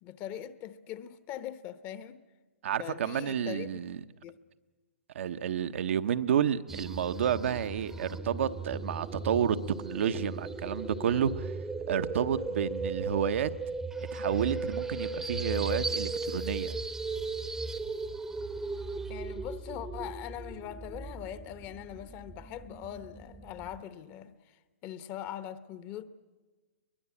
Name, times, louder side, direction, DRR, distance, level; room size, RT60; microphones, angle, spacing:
voice 1, 0.0-2.2 2.8-3.8 4.2-4.4 18.9-24.6 24.8-26.0, left 11 dB, 30° left, 1.0 m, -41 dB
voice 2, 2.6-4.0 5.1-9.6 9.8-11.5 11.9-13.5 14.1-16.8, right 8 dB, 65° right, 0.9 m, -30 dB
sound 1, 6.7-23.8, right 3 dB, 5° right, 0.8 m, -37 dB
22.5 x 20.0 x 8.5 m
hypercardioid pair, 145°, 7 cm